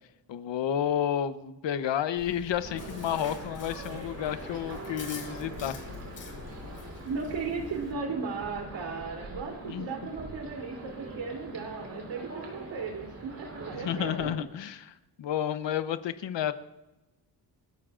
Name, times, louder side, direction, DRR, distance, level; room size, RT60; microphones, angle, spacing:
voice 1, 0.3-5.8 9.6-9.9 13.8-16.5, left 10 dB, 85° left, 11 dB, 1.0 m, -31 dB
Chewing mastication, 2.2-7.9, left 4 dB, 45° left, 2.4 m, -45 dB
sound 1, 2.6-14.3, right 2 dB, 35° right, 4.4 m, -43 dB
voice 2, 7.0-14.4, right 4 dB, 90° right, 2 dB, 3.5 m, -36 dB
29.5 x 14.0 x 2.6 m, 1.0 s
wide cardioid pair, 170°, 43 cm